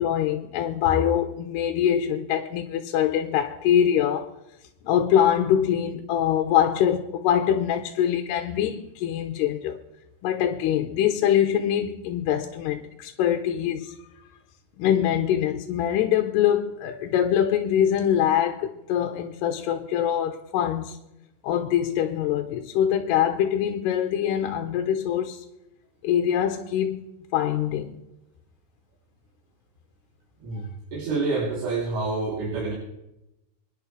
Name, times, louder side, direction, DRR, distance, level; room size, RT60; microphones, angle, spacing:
voice 1, 0.0-4.3 4.8-9.8 10.2-14.0 14.8-21.0 21.4-25.4 26.0-27.1 27.3-27.9, left 10 dB, 80° left, 3.0 m, -24 dB
voice 2, 30.4-32.7, right 3 dB, 70° right, 5.2 m, -28 dB
26.5 x 11.0 x 3.3 m
omnidirectional pair, 4.8 m